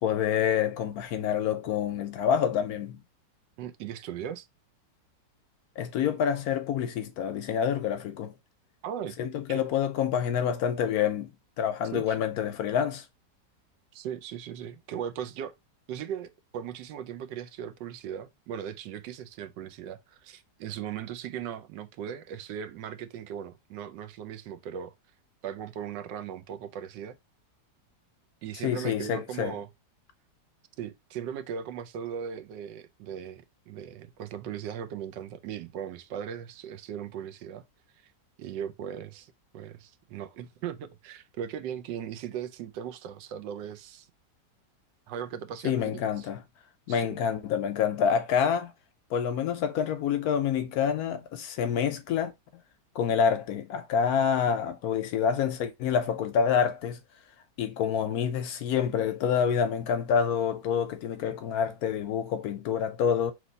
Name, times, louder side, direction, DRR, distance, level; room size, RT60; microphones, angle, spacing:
voice 1, 0.0-3.0 5.8-8.3 9.2-13.1 28.6-29.6 45.6-46.4 46.9-48.7 49.1-52.3 52.9-57.0 57.6-63.3, left 8 dB, 70° left, 0.9 m, -27 dB
voice 2, 3.6-4.5 8.8-9.2 9.5-9.6 11.9-12.3 13.9-15.5 15.9-24.9 25.4-27.2 28.4-29.7 30.8-37.6 38.0-38.1 38.4-44.1 45.1-46.3 46.9-47.2, right 9 dB, 90° right, 1.3 m, -38 dB
3.2 x 3.1 x 3.9 m
omnidirectional pair, 1.9 m